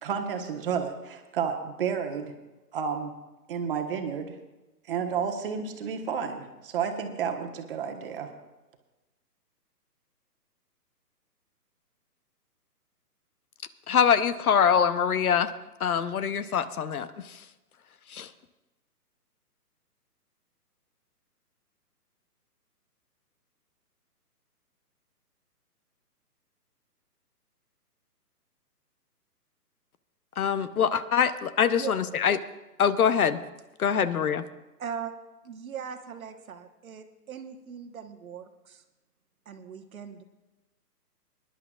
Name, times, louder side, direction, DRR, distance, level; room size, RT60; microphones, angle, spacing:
voice 1, 0.0-2.3 2.7-3.1 3.5-4.4 4.9-8.3, right 7 dB, 35° right, 5 dB, 1.2 m, -31 dB
voice 2, 13.9-15.5 15.8-17.1 18.1-18.3 30.4-32.4 32.8-33.4 33.8-34.4, left 7 dB, 65° left, 14 dB, 0.8 m, -24 dB
voice 3, 34.8-35.1 35.4-38.8 39.5-40.2, right 7 dB, 60° right, 7 dB, 1.2 m, -39 dB
25.0 x 11.0 x 2.4 m, 1.1 s
hypercardioid pair, 150°, 48 cm